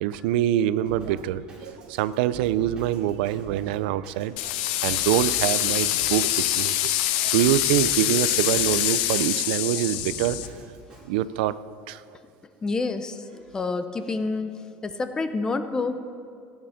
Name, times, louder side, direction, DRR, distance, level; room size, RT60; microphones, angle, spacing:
voice 1, 0.0-4.3 4.8-6.7 7.2-10.4 11.1-11.5 11.9-12.0, right 12 dB, 85° right, 15 dB, 0.4 m, -25 dB
Drum kit, 0.8-11.1, right 1 dB, 20° right, 2.8 m, -45 dB
sound 1, 4.4-10.5, left 13 dB, 75° left, 0.7 m, -25 dB
voice 2, 12.6-16.0, left 3 dB, 15° left, 9 dB, 0.5 m, -28 dB
16.0 x 8.8 x 5.7 m, 2.4 s
cardioid pair, 175°, 5 cm